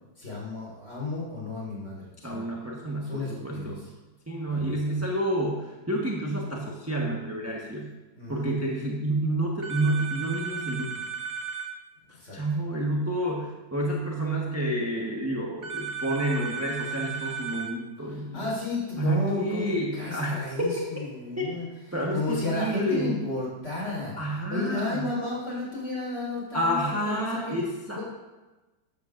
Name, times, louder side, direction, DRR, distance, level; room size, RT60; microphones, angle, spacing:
voice 1, 0.2-2.4 3.0-3.8 4.5-4.7 8.1-8.5 12.1-12.4 18.3-21.7 22.1-24.1 24.5-27.3 27.9-28.0, left 3 dB, 40° left, -4 dB, 4.7 m, -32 dB
voice 2, 2.2-3.8 4.3-7.9 8.3-10.9 12.3-18.5 19.0-20.7 21.4-21.5 21.9-23.2 24.2-25.1 26.5-28.0, right 1 dB, 10° right, -3 dB, 1.0 m, -29 dB
sound 1, 9.6-11.7 15.6-17.7, right 6 dB, 30° right, 1.2 m, -34 dB
14.0 x 12.0 x 2.6 m, 1.2 s
omnidirectional pair, 1.9 m